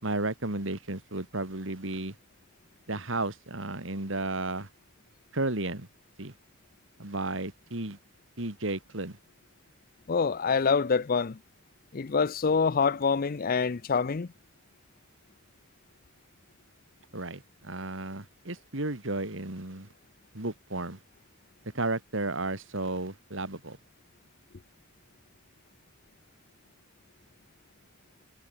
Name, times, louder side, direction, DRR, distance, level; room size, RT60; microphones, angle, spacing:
voice 1, 0.0-2.2 2.9-4.7 5.3-5.9 6.2-6.3 7.0-8.0 8.4-9.2 17.1-19.9 20.3-21.0 21.7-23.8, right 2 dB, 65° right, 2.9 m, -33 dB
voice 2, 10.1-11.4 11.9-14.3, left 5 dB, 45° left, 0.5 m, -26 dB
head